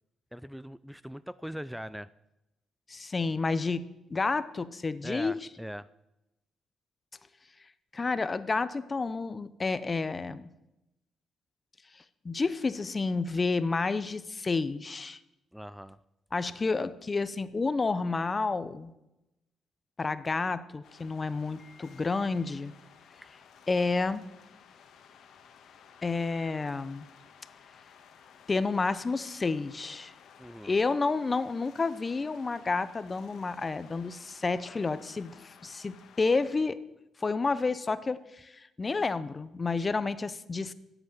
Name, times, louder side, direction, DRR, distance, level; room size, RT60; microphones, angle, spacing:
voice 1, 0.3-2.1 5.0-5.9 15.5-16.0 23.2-23.3 30.4-30.7, equal, ahead, 17 dB, 0.3 m, -41 dB
voice 2, 2.9-3.8 4.1-5.3 7.9-10.5 12.2-15.2 16.3-18.9 20.0-22.7 23.7-24.2 26.0-27.1 28.5-30.1 30.6-36.8 37.2-40.7, left 3 dB, 30° left, 15 dB, 0.7 m, -30 dB
sound 1, 20.8-36.5, left 7 dB, 70° left, 1.4 m, -56 dB
11.5 x 8.2 x 7.4 m, 0.93 s
cardioid pair, 90°, 0 cm